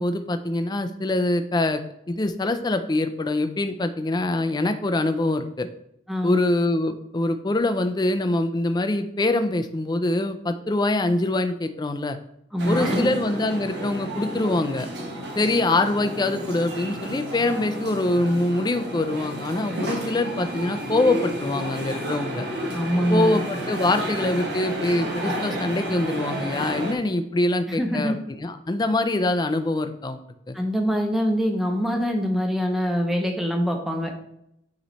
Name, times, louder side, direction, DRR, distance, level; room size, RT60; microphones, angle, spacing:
voice 1, 0.0-1.8 2.1-5.7 6.2-12.2 12.7-14.9 15.4-22.5 23.1-30.2 30.5-30.6, left 2 dB, 20° left, 8 dB, 0.4 m, -24 dB
voice 2, 6.1-6.4 12.5-13.1 22.7-23.4 27.7-28.2 30.5-34.1, equal, ahead, 2 dB, 0.8 m, -24 dB
sound 1, 12.6-26.9, equal, 55° right, 1.2 m, -31 dB
9.0 x 3.1 x 4.1 m, 0.78 s
head